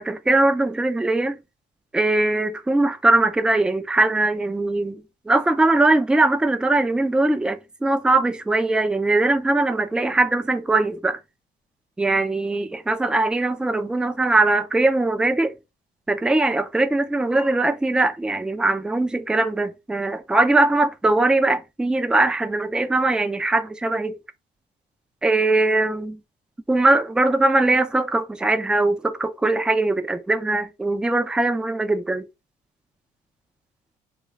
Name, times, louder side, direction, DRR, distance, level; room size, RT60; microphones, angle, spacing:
voice 1, 0.0-1.4 1.9-5.0 5.3-11.2 12.0-15.5 16.1-24.2 25.2-26.2 26.7-32.3, right 2 dB, 5° right, 0.4 m, -21 dB
3.1 x 2.3 x 3.1 m
cardioid pair, 110°, 17 cm